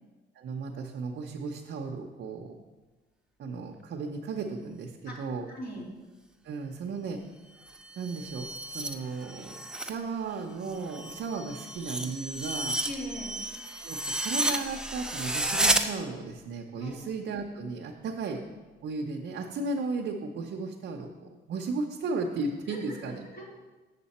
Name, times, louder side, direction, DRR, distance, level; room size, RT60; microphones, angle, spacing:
voice 1, 0.3-2.5 3.4-5.5 6.4-7.2 8.0-12.8 13.8-18.5 18.8-23.3, right 3 dB, 65° right, 0 dB, 0.7 m, -35 dB
voice 2, 5.5-5.9 12.8-13.3 16.8-17.0 22.7-22.9 23.3-23.6, left 1 dB, 50° left, -4 dB, 2.8 m, -39 dB
sound 1, 7.6-10.0 10.3-15.8, right 1 dB, 5° right, 0.5 m, -32 dB
7.3 x 6.8 x 4.2 m, 1.2 s
cardioid pair, 90°, 20 cm